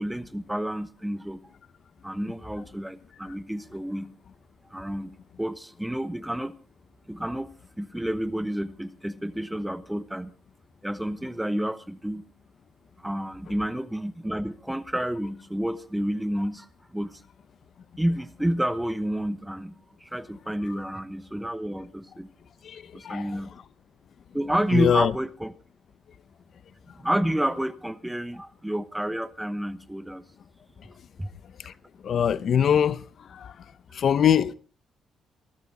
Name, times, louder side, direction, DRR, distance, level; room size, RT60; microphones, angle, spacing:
voice 1, 0.0-1.5 2.0-4.1 4.7-6.5 7.1-7.5 7.8-10.3 10.8-12.2 13.0-17.2 18.0-22.3 22.9-23.6 24.3-25.5 27.0-30.2 31.2-31.3, right 1 dB, 5° right, 1.0 m, -30 dB
voice 2, 23.0-23.4 24.7-25.1 32.0-33.0 33.4-33.5 34.0-34.5, left 8 dB, 60° left, 0.7 m, -22 dB
20.0 x 13.0 x 4.1 m
cardioid pair, 90°, 0 cm